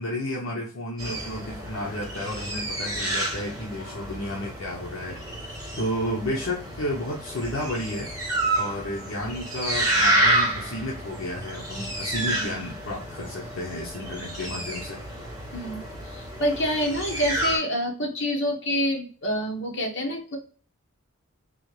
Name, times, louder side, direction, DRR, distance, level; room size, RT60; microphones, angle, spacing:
voice 1, 0.0-8.1 8.5-15.0, left 1 dB, 70° left, -2 dB, 0.8 m, -32 dB
sound 1, 1.0-17.6, right 1 dB, 15° right, 1.6 m, -29 dB
voice 2, 15.5-20.4, equal, 55° left, 0 dB, 1.2 m, -27 dB
4.0 x 2.8 x 3.2 m, 0.42 s
head